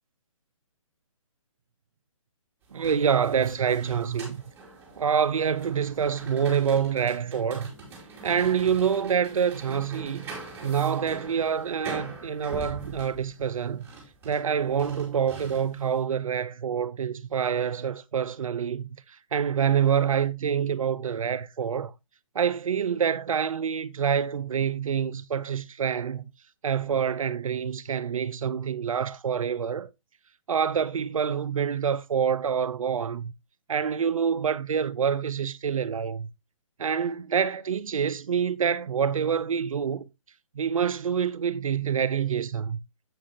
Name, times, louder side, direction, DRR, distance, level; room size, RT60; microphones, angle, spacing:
sound 1, 2.6-15.9, right 3 dB, 10° right, 2.8 m, -43 dB
voice 1, 2.7-4.4 5.0-7.7 8.2-10.3 10.6-13.9 14.2-21.9 22.3-26.3 26.6-29.9 30.5-33.3 33.7-36.3 36.8-40.1 40.5-42.8, right 7 dB, 75° right, 0.7 m, -26 dB
7.7 x 7.4 x 2.8 m
hypercardioid pair, 150°, 17 cm